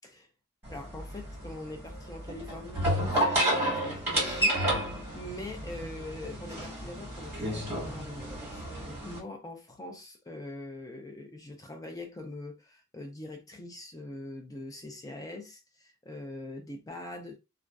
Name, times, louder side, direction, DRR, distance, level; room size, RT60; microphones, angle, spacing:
sound 1, 0.6-9.2, right 1 dB, 10° right, 1.3 m, -31 dB
voice 1, 0.7-4.6 5.1-17.4, left 2 dB, 15° left, 0.4 m, -43 dB
2.4 x 2.2 x 2.3 m
head